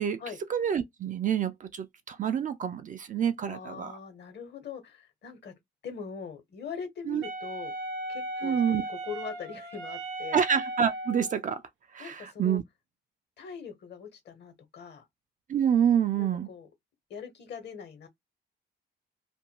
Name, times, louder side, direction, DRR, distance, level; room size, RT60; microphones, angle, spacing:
voice 1, 0.5-4.0 7.1-7.2 8.4-8.8 10.3-11.6 11.9-12.6 15.5-16.5, right 8 dB, 40° right, 0.4 m, -27 dB
voice 2, 3.4-5.5 5.8-7.7 8.1-10.4 12.0-12.6 13.4-15.0 16.2-16.7 17.1-18.1, left 6 dB, 60° left, 1.1 m, -42 dB
Wind instrument woodwind instrument, 7.2-11.4, right 1 dB, 75° right, 0.8 m, -36 dB
2.5 x 2.2 x 2.8 m
cardioid pair, 90°, 20 cm